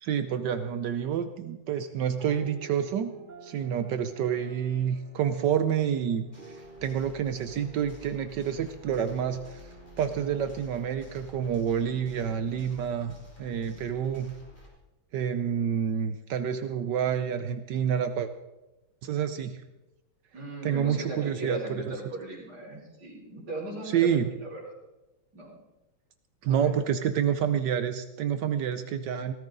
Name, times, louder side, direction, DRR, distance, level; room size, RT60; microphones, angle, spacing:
voice 1, 0.0-3.1 3.4-6.3 6.8-9.7 10.0-14.3 15.1-18.3 19.0-19.6 20.6-21.6 21.9-22.0 23.8-24.3 26.4-29.3, right 8 dB, 70° right, 10 dB, 1.2 m, -28 dB
sound 1, 2.2-11.9, right 3 dB, 30° right, 1.1 m, -50 dB
sound 2, 6.3-14.7, left 3 dB, 25° left, 3.1 m, -51 dB
voice 2, 20.3-24.1 24.4-24.7 25.3-25.6 26.5-26.7, right 1 dB, 55° right, -6 dB, 4.4 m, -38 dB
17.0 x 14.0 x 4.0 m, 0.99 s
omnidirectional pair, 2.1 m